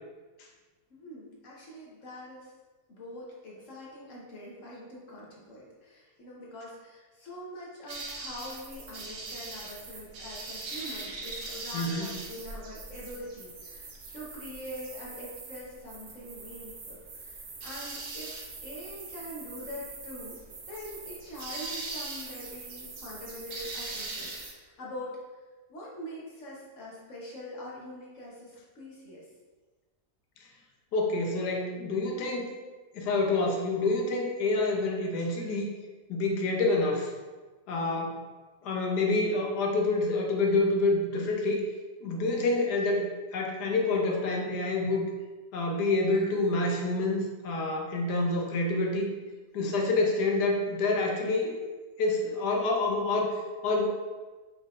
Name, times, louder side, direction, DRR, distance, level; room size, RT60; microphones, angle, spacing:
voice 1, 0.9-2.5 2.9-18.3 18.6-20.4 20.7-25.2 25.7-29.3, left 1 dB, 55° left, -5 dB, 1.3 m, -44 dB
sound 1, 7.9-24.5, right 3 dB, 60° right, 0.8 m, -41 dB
voice 2, 11.7-12.1 30.9-32.5 32.9-35.7 36.1-37.1 37.7-38.2 38.6-41.6 42.0-45.0 45.5-49.1 49.5-51.6 52.0-53.9, left 2 dB, 85° left, 1 dB, 1.3 m, -27 dB
5.2 x 3.8 x 2.5 m, 1.3 s
omnidirectional pair, 1.7 m